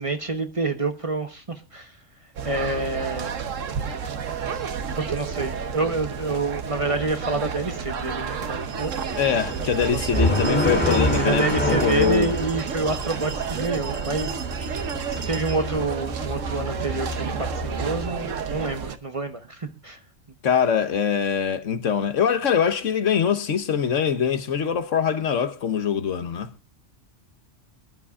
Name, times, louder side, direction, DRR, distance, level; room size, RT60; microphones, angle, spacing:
voice 1, 0.0-1.9 2.4-3.3 5.0-9.0 9.8-10.3 11.2-14.4 15.1-17.5 17.8-20.0, right 3 dB, 30° right, 1.1 m, -28 dB
sound 1, 2.4-19.0, right 6 dB, 85° right, 1.3 m, -31 dB
sound 2, 9.1-18.1, equal, 10° left, 5.5 m, -28 dB
voice 2, 9.2-12.3 20.4-26.5, left 7 dB, 80° left, 1.4 m, -23 dB
24.0 x 11.5 x 2.4 m
omnidirectional pair, 1.3 m